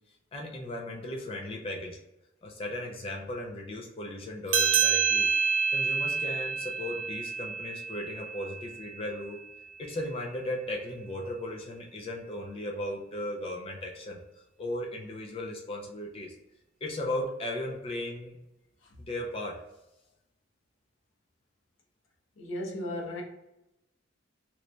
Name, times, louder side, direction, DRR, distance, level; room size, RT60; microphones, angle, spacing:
voice 1, 0.3-2.0 2.4-5.3 5.7-9.4 9.8-14.2 14.6-16.4 16.8-18.4 19.0-19.6, left 1 dB, 30° left, 0.4 m, -36 dB
sound 1, 4.5-9.4, right 6 dB, 80° right, 0.6 m, -28 dB
voice 2, 22.4-23.2, left 1 dB, 85° left, 0.8 m, -35 dB
3.1 x 2.2 x 3.8 m
head